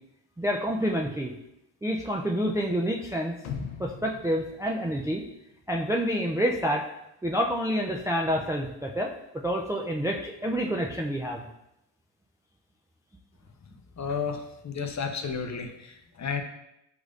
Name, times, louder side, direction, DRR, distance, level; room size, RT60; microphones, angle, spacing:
voice 1, 0.4-1.3 1.8-3.4 3.8-5.2 5.7-6.8 7.2-9.1 9.4-11.4, equal, 5° right, 0 dB, 0.4 m, -28 dB
sound 1, 3.4-5.6 6.0-6.1, left 6 dB, 80° left, 0.7 m, -40 dB
voice 2, 14.0-16.4, left 6 dB, 35° left, 5 dB, 0.7 m, -32 dB
6.6 x 3.0 x 2.5 m, 0.83 s
supercardioid pair, 55°, 48 cm